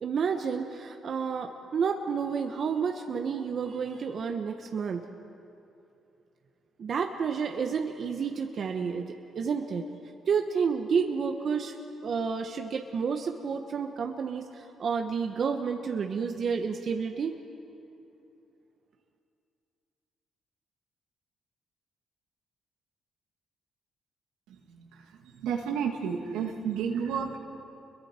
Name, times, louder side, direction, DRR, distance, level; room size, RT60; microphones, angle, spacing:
voice 1, 0.0-5.0 6.8-9.0 9.3-9.8 10.3-11.7 12.0-17.3, right 6 dB, 60° right, 4 dB, 1.2 m, -30 dB
voice 2, 25.4-27.4, right 7 dB, 90° right, 2 dB, 1.9 m, -31 dB
29.5 x 22.5 x 4.5 m, 2.8 s
supercardioid pair, 65°, 0 cm